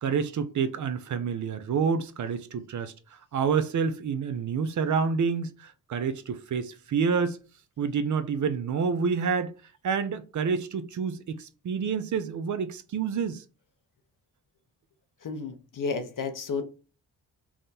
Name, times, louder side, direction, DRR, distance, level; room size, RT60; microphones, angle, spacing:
voice 1, 0.0-7.4 7.8-9.5 9.8-13.4, right 6 dB, 50° right, 0.5 m, -28 dB
voice 2, 15.2-16.6, left 4 dB, 55° left, 0.8 m, -32 dB
3.5 x 2.2 x 4.0 m
supercardioid pair, 50°, 38 cm